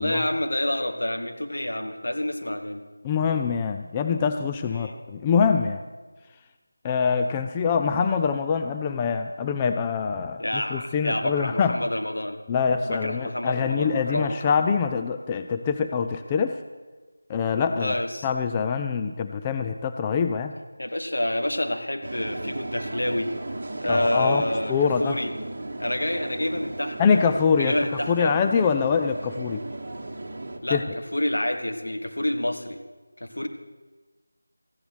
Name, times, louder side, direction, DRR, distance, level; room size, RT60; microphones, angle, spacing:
voice 1, 0.0-2.8 4.7-5.0 10.4-12.4 12.8-14.5 17.7-18.3 20.8-23.3 23.8-25.3 25.8-27.2 27.6-28.3 30.6-30.8 31.1-32.8 33.2-33.5, left 1 dB, 75° left, 5 dB, 1.6 m, -28 dB
voice 2, 3.0-5.8 6.8-11.8 12.5-16.6 17.3-17.9 18.2-20.5 23.9-24.4 24.7-25.2 27.0-27.8 28.1-29.6 30.7-30.8, left 6 dB, 15° left, 6 dB, 0.3 m, -24 dB
sound 1, 22.0-30.6, right 2 dB, 40° right, 1.6 m, -35 dB
14.5 x 9.9 x 6.2 m, 1.3 s
figure-of-eight pair, 170°, 0 cm